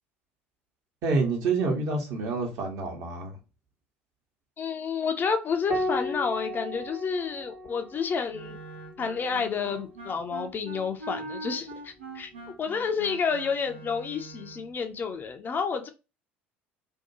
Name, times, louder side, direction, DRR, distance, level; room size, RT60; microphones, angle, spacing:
voice 1, 1.0-3.4, right 3 dB, 50° right, 1.0 m, -27 dB
voice 2, 4.6-8.6 9.0-12.3 12.6-15.9, left 5 dB, 30° left, 0.4 m, -30 dB
Piano, 5.7-10.5 12.2-13.0, left 1 dB, 5° right, 0.7 m, -37 dB
Wind instrument woodwind instrument, 8.3-14.7, right 2 dB, 80° right, 0.5 m, -42 dB
2.7 x 2.2 x 2.7 m
figure-of-eight pair, 60°, 6 cm